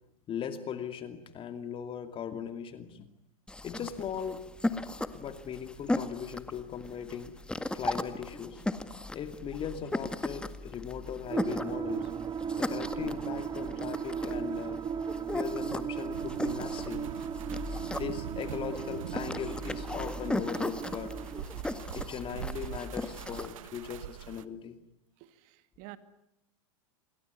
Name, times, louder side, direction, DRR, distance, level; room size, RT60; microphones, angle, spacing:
voice 1, 0.3-3.1 3.6-4.4 5.1-7.4 7.7-8.6 9.0-12.1 12.6-14.8 15.3-17.1 17.9-21.1 21.9-24.8, left 8 dB, 30° left, 2.6 m, -39 dB
sound 1, 3.5-23.5, left 2 dB, 5° left, 1.8 m, -37 dB
sound 2, 11.3-21.4, right 7 dB, 25° right, 1.6 m, -37 dB
sound 3, 16.1-24.4, right 13 dB, 70° right, 1.4 m, -43 dB
voice 2, 25.2-26.0, right 18 dB, 50° right, 2.3 m, -49 dB
28.0 x 21.0 x 9.5 m
hypercardioid pair, 115°, 18 cm